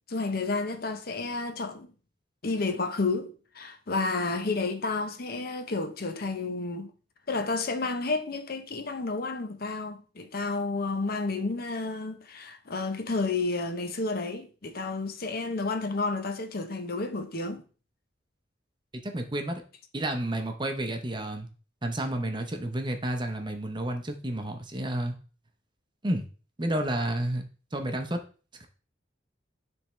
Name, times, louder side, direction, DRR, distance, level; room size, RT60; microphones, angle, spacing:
voice 1, 0.1-1.9 2.4-6.9 7.3-17.6, left 3 dB, 50° left, 0.7 m, -31 dB
voice 2, 19.0-19.6 19.9-21.5 21.8-25.1 26.0-26.2 26.6-27.4 27.7-28.2, right 1 dB, 25° right, 0.7 m, -30 dB
10.0 x 3.5 x 3.2 m
head